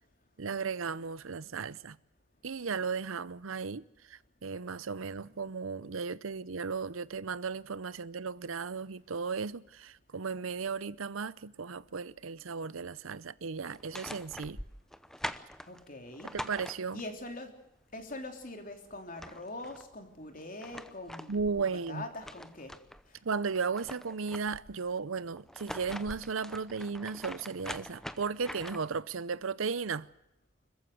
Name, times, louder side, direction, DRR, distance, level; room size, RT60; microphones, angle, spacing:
voice 1, 0.4-2.0 2.4-3.8 4.1-14.6 16.3-17.0 21.3-22.0 23.2-30.1, right 5 dB, 75° right, 0.7 m, -35 dB
sound 1, 13.7-17.2 18.7-18.8 19.0-19.9 20.4-23.0 23.4-24.8 25.4-29.0, equal, ahead, 0.8 m, -44 dB
voice 2, 15.7-16.3 16.9-17.5 17.9-22.7, left 2 dB, 40° left, 3.4 m, -43 dB
25.5 x 15.0 x 7.8 m
head